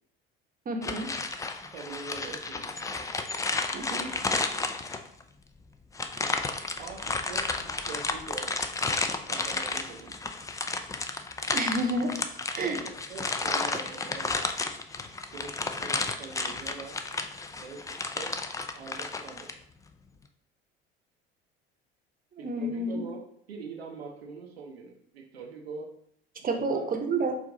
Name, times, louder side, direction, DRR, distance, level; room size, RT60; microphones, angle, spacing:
voice 1, 0.7-1.1 3.7-4.2 11.5-12.1 12.5-12.8 22.4-23.1 26.4-27.4, right 2 dB, 30° right, 4 dB, 0.8 m, -30 dB
sound 1, 0.8-5.2 5.9-19.5, left 3 dB, 10° left, 0.3 m, -32 dB
voice 2, 1.7-2.7 6.8-8.5 9.3-10.1 12.6-14.5 15.3-17.0 17.6-18.3 18.7-19.5 22.4-25.9 26.4-26.8, right 5 dB, 90° right, 1 dB, 0.7 m, -43 dB
4.7 x 2.5 x 3.8 m, 0.67 s
hypercardioid pair, 65°, 30 cm